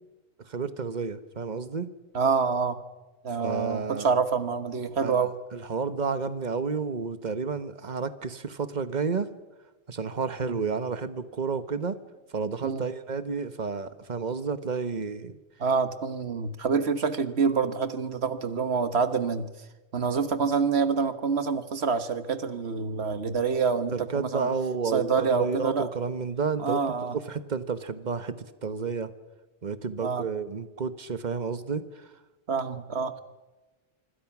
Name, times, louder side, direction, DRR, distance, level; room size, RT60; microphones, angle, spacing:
voice 1, 0.5-1.9 3.4-4.1 5.0-5.2 5.5-9.3 9.9-12.0 12.3-15.4 23.9-26.8 27.1-28.4 28.6-29.1 29.6-31.8, right 5 dB, 40° right, 12 dB, 1.2 m, -31 dB
voice 2, 2.1-2.8 3.2-5.3 10.4-10.6 12.6-12.8 15.6-19.5 19.9-24.5 24.8-25.9 26.6-27.2 30.0-30.2 32.5-33.2, right 5 dB, 70° right, 11 dB, 1.6 m, -27 dB
25.5 x 24.5 x 6.1 m, 1.1 s
omnidirectional pair, 1.1 m